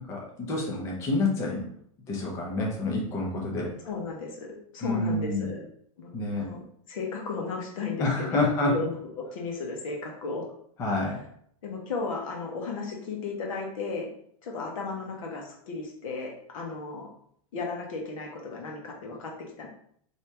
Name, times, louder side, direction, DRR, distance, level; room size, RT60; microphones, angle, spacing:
voice 1, 0.1-1.6 2.1-3.7 4.8-5.5 6.1-6.5 8.0-8.8 10.8-11.2, left 2 dB, 15° left, -2 dB, 0.5 m, -28 dB
voice 2, 3.8-5.7 6.0-8.5 8.7-10.5 11.6-14.1 14.4-17.1 17.5-19.7, left 4 dB, 70° left, 0 dB, 1.0 m, -35 dB
2.9 x 2.7 x 3.4 m, 0.66 s
supercardioid pair, 170°, 18 cm